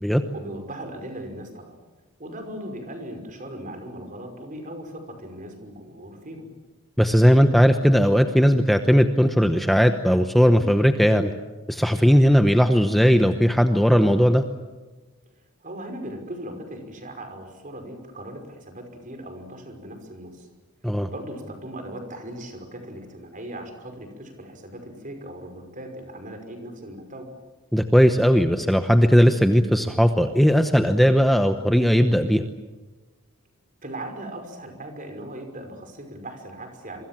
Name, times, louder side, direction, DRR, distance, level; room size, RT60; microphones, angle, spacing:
voice 1, 0.3-1.8 2.2-6.5 15.6-20.5 21.1-27.3 33.8-37.0, right 1 dB, 40° right, 6 dB, 5.6 m, -38 dB
voice 2, 7.0-11.3 11.7-14.4 20.8-21.1 27.7-32.4, equal, ahead, 7 dB, 0.9 m, -18 dB
27.0 x 24.0 x 7.5 m, 1.2 s
head